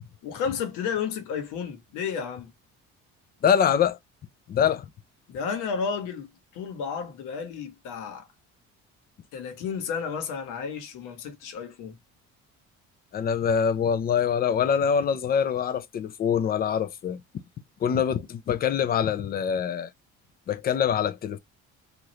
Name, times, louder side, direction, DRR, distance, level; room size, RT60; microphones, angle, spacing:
voice 1, 0.2-2.5 5.3-8.3 9.3-12.0, left 6 dB, 85° left, 1.1 m, -32 dB
voice 2, 3.4-4.0 4.5-4.9 13.1-17.2 17.8-19.9 20.5-21.4, left 7 dB, 30° left, 0.4 m, -24 dB
3.1 x 2.5 x 2.7 m
cardioid pair, 145°, 30 cm